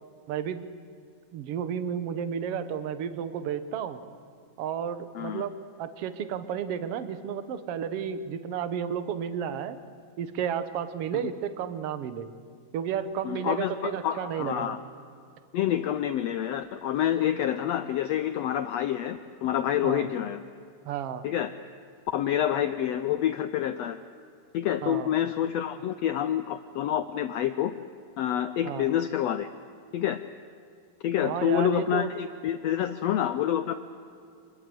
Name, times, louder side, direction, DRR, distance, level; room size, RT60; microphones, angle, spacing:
voice 1, 0.3-0.7 1.3-4.0 4.6-9.8 10.2-12.3 12.7-14.8 19.8-20.1 20.9-21.2 24.8-25.1 28.7-28.9 31.2-32.1, right 8 dB, 60° right, 11 dB, 1.8 m, -32 dB
voice 2, 5.1-5.4 13.2-14.8 15.5-20.4 21.2-21.5 22.1-24.0 24.5-27.7 28.2-29.5 29.9-30.2 31.0-33.7, left 10 dB, 80° left, 10 dB, 1.5 m, -27 dB
26.5 x 21.5 x 7.8 m, 2.4 s
omnidirectional pair, 3.8 m